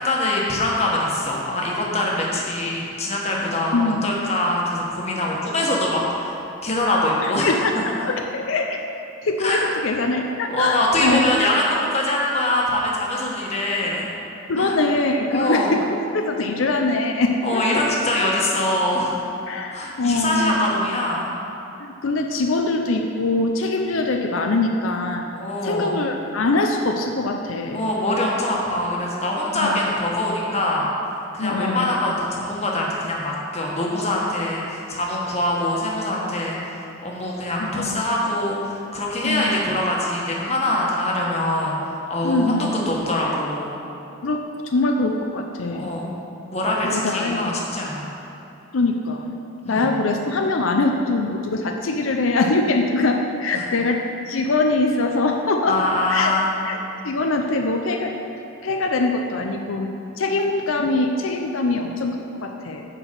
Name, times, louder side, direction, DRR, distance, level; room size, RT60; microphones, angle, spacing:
voice 1, 0.0-8.1 9.4-9.6 10.5-14.1 14.6-14.7 15.3-15.7 17.4-19.2 19.7-21.3 25.3-25.9 27.7-30.9 31.3-41.7 42.1-42.6 42.9-43.7 45.7-46.1 46.5-48.1 49.6-49.9 53.5-53.7 55.6-56.5 60.3-60.4, left 1 dB, 35° left, -3 dB, 1.4 m, -23 dB
voice 2, 3.7-4.0 7.2-8.8 9.2-11.2 14.5-17.6 19.5-20.6 21.8-25.3 25.6-27.8 29.5-29.7 31.4-31.9 37.6-38.0 39.2-39.5 42.2-42.7 44.2-45.9 46.8-47.5 48.7-49.3 49.7-55.8 56.1-56.3 56.6-56.8 57.0-58.1 58.6-59.9 60.2-62.9, left 2 dB, 90° left, 3 dB, 0.6 m, -23 dB
9.8 x 4.6 x 6.8 m, 2.8 s
head